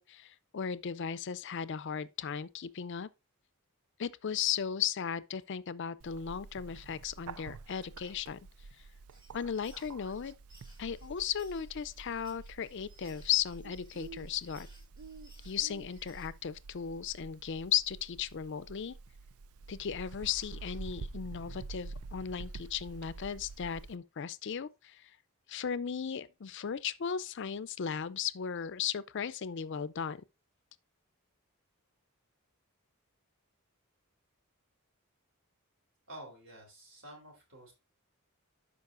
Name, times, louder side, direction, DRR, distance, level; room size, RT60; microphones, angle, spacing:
voice 1, 0.0-3.1 4.0-8.4 9.3-10.3 10.8-14.7 15.4-18.9 19.7-25.1 25.5-30.2, left 8 dB, 55° left, 0.4 m, -36 dB
Bird, 6.0-24.0, right 4 dB, 75° right, 0.4 m, -48 dB
sound 1, 9.1-16.4, right 1 dB, 20° right, 2.1 m, -62 dB
voice 2, 36.1-37.7, right 1 dB, 60° right, 3.5 m, -50 dB
11.5 x 5.2 x 2.5 m
head